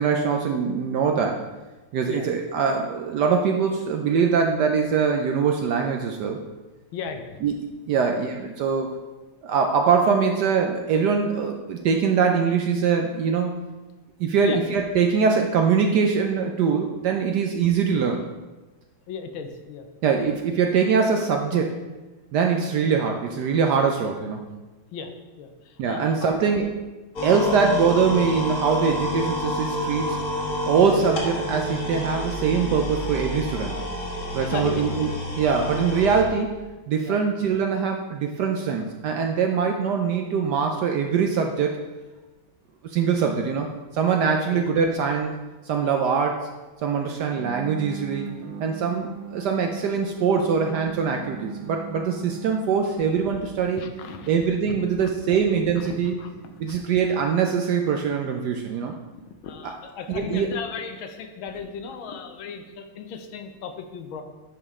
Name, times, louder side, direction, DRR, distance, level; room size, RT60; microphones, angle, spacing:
voice 1, 0.0-1.4 1.9-6.4 7.4-7.5 7.9-8.9 9.4-13.7 14.2-18.2 20.0-21.8 22.3-24.5 25.8-26.7 27.2-30.2 30.7-33.8 34.3-35.1 35.3-36.6 36.9-41.7 42.8-43.7 43.9-45.3 45.7-46.5 46.8-48.3 48.6-53.9 54.3-56.2 56.6-58.9 59.6-59.7 60.1-60.5, right 6 dB, 70° right, 3 dB, 1.0 m, -23 dB
voice 2, 6.9-7.4 7.9-8.0 14.4-14.6 19.1-19.9 24.9-25.1 25.4-26.4 27.5-27.6 34.3-34.8 37.0-37.2 44.4-44.6 53.8-54.3 54.7-55.1 55.8-55.9 56.2-56.3 56.7-56.8 59.4-64.2, left 6 dB, 80° left, 6 dB, 1.5 m, -35 dB
sound 1, 27.2-36.2, left 1 dB, 45° left, 1.6 m, -29 dB
sound 2, 47.3-58.1, right 6 dB, 85° right, 1.7 m, -40 dB
9.7 x 5.0 x 3.6 m, 1.2 s
omnidirectional pair, 2.3 m